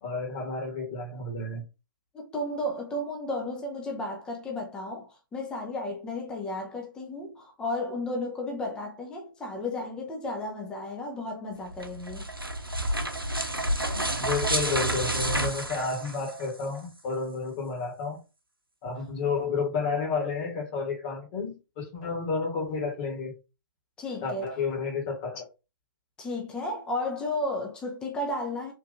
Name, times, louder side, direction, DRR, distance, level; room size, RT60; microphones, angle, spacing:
voice 1, 0.0-1.6 14.2-18.2 18.8-23.3 24.2-25.4, left 4 dB, 30° left, 1.3 m, -31 dB
voice 2, 2.1-12.3 24.0-24.5 26.2-28.7, left 1 dB, 5° left, 0.6 m, -33 dB
sound 1, 11.7-16.6, right 1 dB, 90° right, 0.7 m, -29 dB
3.7 x 2.6 x 2.5 m
figure-of-eight pair, 130°, 11 cm